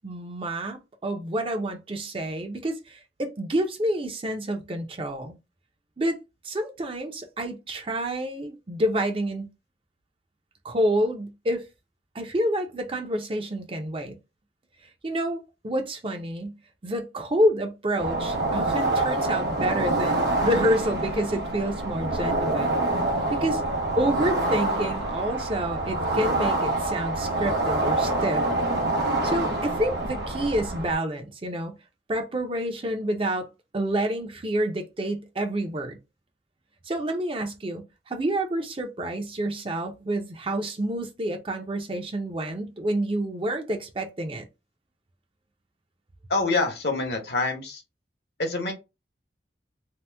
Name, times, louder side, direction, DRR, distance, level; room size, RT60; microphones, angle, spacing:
voice 1, 0.0-5.4 6.0-6.2 6.4-9.5 10.6-11.6 12.1-14.2 15.0-16.6 16.8-22.8 23.4-23.6 24.0-28.4 29.2-31.7 32.1-33.5 33.7-36.0 36.9-44.4, right 1 dB, 30° right, 0.5 m, -28 dB
sound 1, 18.0-30.9, right 2 dB, 70° right, 0.9 m, -26 dB
voice 2, 46.3-47.8 48.4-48.7, left 3 dB, 65° left, 0.8 m, -26 dB
2.8 x 2.1 x 3.2 m
head